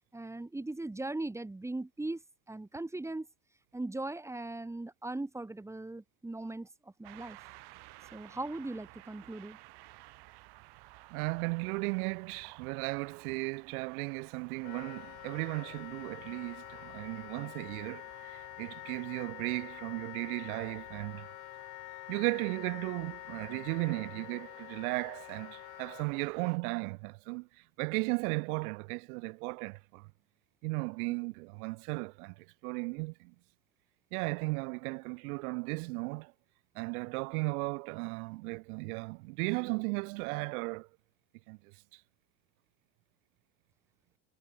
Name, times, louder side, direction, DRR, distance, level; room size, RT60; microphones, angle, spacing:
voice 1, 0.1-2.2 2.5-3.3 3.7-7.4 8.1-9.6, right 2 dB, 5° right, 0.9 m, -39 dB
sound 1, 7.0-26.6, right 21 dB, 65° right, 4.4 m, -56 dB
voice 2, 11.1-21.3 22.1-27.5 27.8-30.1 30.6-33.3 34.1-36.3 36.7-40.9 41.5-41.6, right 28 dB, 85° right, 0.9 m, -36 dB
Wind instrument woodwind instrument, 14.6-26.1, left 26 dB, 90° left, 1.7 m, -47 dB
supercardioid pair, 120°, 43 cm